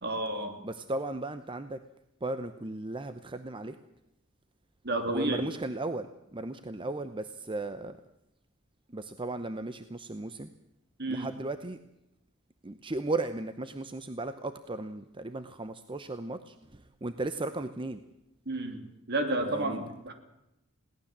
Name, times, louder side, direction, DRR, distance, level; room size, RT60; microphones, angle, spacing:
voice 1, 0.0-0.6 4.8-5.5 11.0-11.3 18.5-20.1, right 2 dB, 50° right, 7 dB, 2.9 m, -31 dB
voice 2, 0.6-1.8 2.2-3.8 5.1-6.1 6.3-8.0 8.9-10.5 11.1-11.8 12.6-18.0 19.4-19.8, right 2 dB, 25° right, 10 dB, 0.8 m, -36 dB
21.5 x 17.5 x 7.4 m, 0.88 s
head